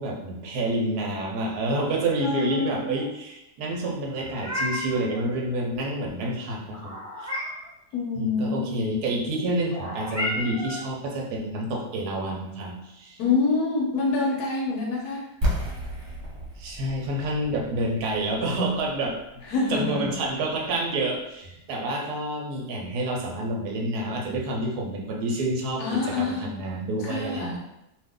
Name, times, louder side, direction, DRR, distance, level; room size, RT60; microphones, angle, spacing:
voice 1, 0.0-7.3 8.2-13.2 16.6-19.2 19.7-27.6, right 1 dB, 70° right, -1 dB, 1.1 m, -28 dB
voice 2, 2.2-3.1 7.9-8.9 13.2-15.3 19.5-20.1 25.8-26.5 27.0-27.6, left 4 dB, 75° left, -2 dB, 1.1 m, -26 dB
Meow, 4.1-5.0 6.7-7.7 9.7-10.8, left 1 dB, 5° left, 0.6 m, -32 dB
sound 1, 15.4-21.2, equal, 50° right, 1.1 m, -33 dB
2.7 x 2.4 x 3.5 m, 0.87 s
omnidirectional pair, 1.8 m